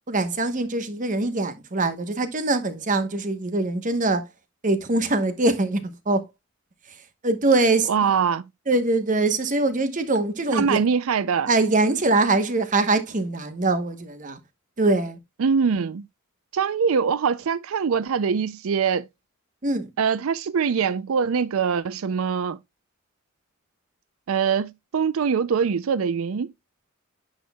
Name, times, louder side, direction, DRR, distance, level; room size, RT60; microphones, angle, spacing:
voice 1, 0.1-4.3 4.6-6.2 7.2-7.9 8.7-10.8 11.5-14.4 14.8-15.2 19.6-19.9, right 2 dB, 35° right, 1.0 m, -23 dB
voice 2, 7.9-8.4 10.5-11.5 15.4-16.0 16.5-19.1 20.0-22.6 24.3-26.5, right 6 dB, 75° right, 0.4 m, -23 dB
10.5 x 6.1 x 2.2 m
head